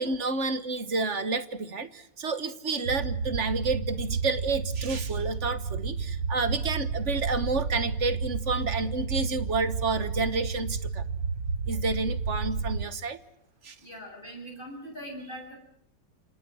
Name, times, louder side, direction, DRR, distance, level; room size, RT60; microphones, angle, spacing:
voice 1, 0.0-11.0 11.7-13.2 13.6-13.7, right 3 dB, 45° right, 12 dB, 1.4 m, -30 dB
sound 1, 2.9-12.8, right 5 dB, 80° right, 2.0 m, -31 dB
voice 2, 13.8-15.6, equal, 25° left, 1 dB, 8.3 m, -41 dB
29.0 x 26.5 x 6.3 m, 0.73 s
omnidirectional pair, 2.0 m